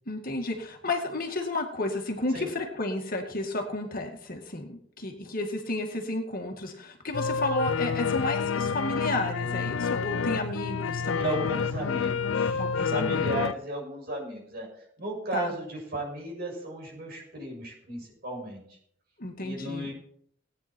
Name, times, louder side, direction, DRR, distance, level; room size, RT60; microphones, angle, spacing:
voice 1, 0.1-11.5 12.6-13.4 15.3-15.5 19.2-19.9, left 2 dB, 50° left, 3 dB, 2.1 m, -32 dB
sound 1, 7.1-13.5, left 5 dB, 90° left, 0.5 m, -28 dB
voice 2, 11.2-14.7 15.0-18.8 19.4-19.9, right 1 dB, 50° right, -1 dB, 6.5 m, -35 dB
18.0 x 9.6 x 4.5 m, 0.66 s
head